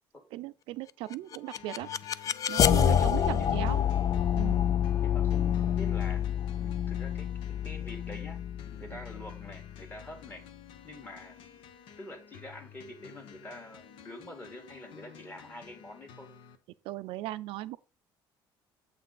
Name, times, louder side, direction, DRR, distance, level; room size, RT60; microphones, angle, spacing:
voice 1, 0.3-1.9 2.5-3.8 4.3-4.6 8.8-9.0 16.8-17.8, right 16 dB, 80° right, 0.5 m, -37 dB
sound 1, 1.1-10.1, left 9 dB, 40° left, 0.3 m, -28 dB
sound 2, 1.6-16.6, left 8 dB, 75° left, 1.2 m, -53 dB
voice 2, 3.4-3.7 5.0-6.2 6.6-7.3 7.6-10.4 10.8-11.7 12.0-16.3, left 1 dB, 20° left, 1.8 m, -46 dB
7.5 x 5.9 x 3.9 m
cardioid pair, 140°, 9 cm